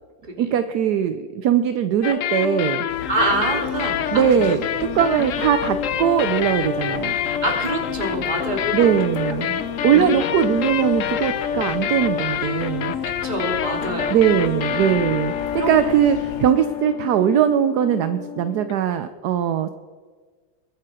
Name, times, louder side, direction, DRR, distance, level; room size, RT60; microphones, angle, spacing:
voice 1, 0.4-2.9 4.1-4.6 4.9-7.1 8.7-12.9 14.1-15.3 15.7-19.7, right 9 dB, 70° right, 10 dB, 1.0 m, -20 dB
sound 1, 2.0-18.9, left 9 dB, 85° left, 0.7 m, -27 dB
sound 2, 2.9-16.5, left 4 dB, 45° left, 1.6 m, -39 dB
voice 2, 3.1-4.5 5.1-5.2 7.4-8.9 9.3-9.5 9.9-10.1 13.2-14.2 15.6-15.7, right 1 dB, 20° right, 1 dB, 2.5 m, -26 dB
22.0 x 8.7 x 4.9 m, 1.5 s
omnidirectional pair, 2.2 m